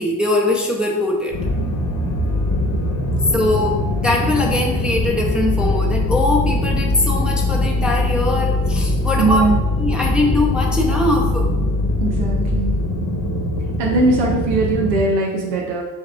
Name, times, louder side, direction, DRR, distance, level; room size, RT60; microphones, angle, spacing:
voice 1, 0.0-1.4 3.3-9.5 9.8-11.5, left 2 dB, ahead, 0 dB, 0.6 m, -21 dB
sound 1, 1.3-15.0, left 2 dB, 40° left, 1.1 m, -21 dB
voice 2, 9.2-9.6 12.0-12.8 13.8-15.8, right 2 dB, 85° right, 0 dB, 0.7 m, -20 dB
5.4 x 3.5 x 2.3 m, 1.1 s
hypercardioid pair, 50°, 49 cm